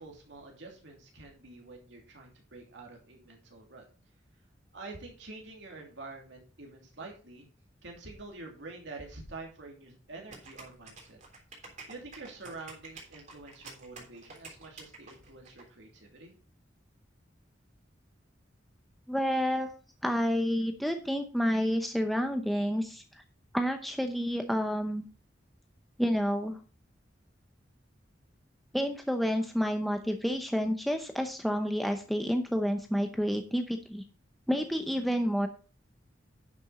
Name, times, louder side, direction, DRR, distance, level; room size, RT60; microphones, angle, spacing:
voice 1, 0.0-3.8 4.7-7.5 7.8-11.2 11.9-16.4, right 3 dB, 70° right, 0 dB, 3.0 m, -47 dB
sound 1, 10.3-15.6, right 3 dB, 40° right, 3.4 m, -49 dB
voice 2, 19.1-19.7 20.0-23.0 23.5-25.1 26.0-26.6 28.7-34.0 34.5-35.5, equal, ahead, 5 dB, 0.7 m, -29 dB
10.5 x 7.0 x 4.1 m, 0.37 s
head